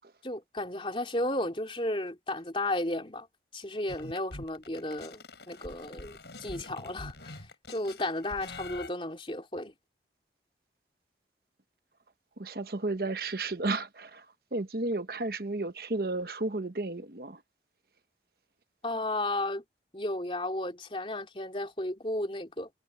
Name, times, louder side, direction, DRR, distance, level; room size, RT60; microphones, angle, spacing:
voice 1, 0.2-3.3 3.5-9.7 18.8-19.6 19.9-22.7, left 1 dB, 30° left, 3.5 m, -34 dB
sound 1, 3.9-8.9, left 2 dB, 70° left, 6.0 m, -45 dB
voice 2, 12.4-14.2 14.5-17.4, right 2 dB, 55° right, 1.1 m, -33 dB
head